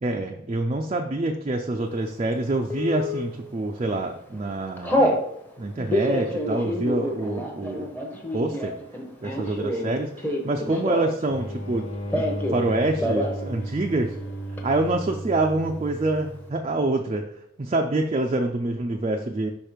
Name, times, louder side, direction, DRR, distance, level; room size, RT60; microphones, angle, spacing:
voice 1, 0.0-5.2 5.6-7.9 8.3-8.8 9.2-14.2 14.6-17.3 17.6-19.5, right 2 dB, 30° right, 3 dB, 0.4 m, -26 dB
Telephone, 2.7-3.2 3.8-4.0 4.3-5.2 5.8-11.3 11.5-12.6 12.9-13.4 13.7-13.8 14.0-14.6, equal, 10° left, 0.9 m, -27 dB
sound 1, 11.3-16.6, right 1 dB, 90° left, 1.6 m, -35 dB
5.6 x 4.4 x 5.0 m, 0.76 s
head